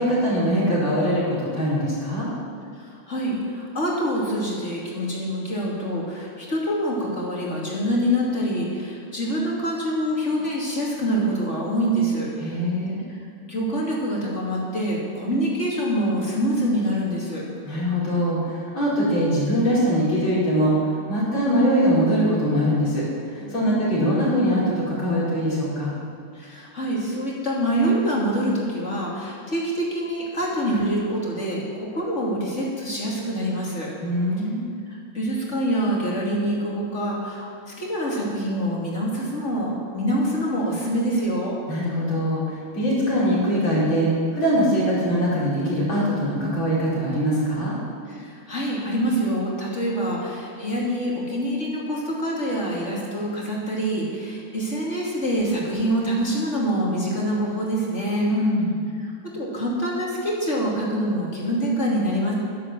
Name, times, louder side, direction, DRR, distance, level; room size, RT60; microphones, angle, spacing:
voice 1, 0.0-2.3 12.4-13.0 17.7-25.9 34.0-34.6 41.7-47.8 58.3-58.8, equal, 90° left, -7 dB, 5.5 m, -22 dB
voice 2, 2.8-12.3 13.1-13.2 13.5-17.5 23.4-24.0 26.3-33.9 34.9-41.6 48.1-58.3 59.0-62.3, equal, 35° left, -4 dB, 2.9 m, -25 dB
11.5 x 11.0 x 7.5 m, 2.3 s
omnidirectional pair, 2.1 m